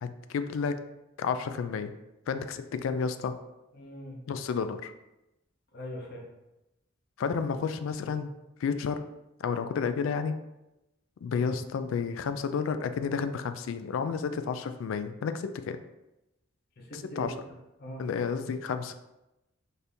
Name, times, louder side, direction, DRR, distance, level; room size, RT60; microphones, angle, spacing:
voice 1, 0.0-0.8 1.2-1.9 2.3-3.3 4.3-4.9 7.2-8.3 8.6-9.0 9.4-10.4 11.2-15.8 16.9-17.3 18.0-19.0, left 6 dB, 80° left, 10 dB, 0.3 m, -31 dB
voice 2, 3.7-4.2 5.7-6.3 16.8-17.3 17.8-18.0, left 1 dB, 50° left, 0 dB, 0.8 m, -41 dB
4.2 x 2.6 x 3.4 m, 0.95 s
head